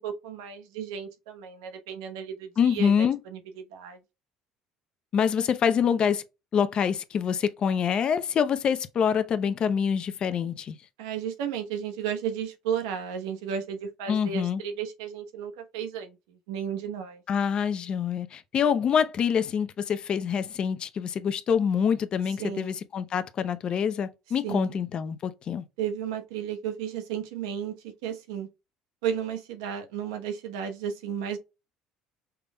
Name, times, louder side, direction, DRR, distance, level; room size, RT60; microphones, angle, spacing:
voice 1, 0.0-3.4 3.7-4.0 11.0-17.2 22.4-22.7 24.4-24.8 25.8-27.7 28.0-28.5 29.0-31.4, right 8 dB, 85° right, 1.0 m, -33 dB
voice 2, 2.6-3.2 5.1-6.2 6.5-10.8 14.1-14.6 17.3-25.6, left 7 dB, 45° left, 0.7 m, -26 dB
5.8 x 3.4 x 2.3 m
supercardioid pair, 80°, 2 cm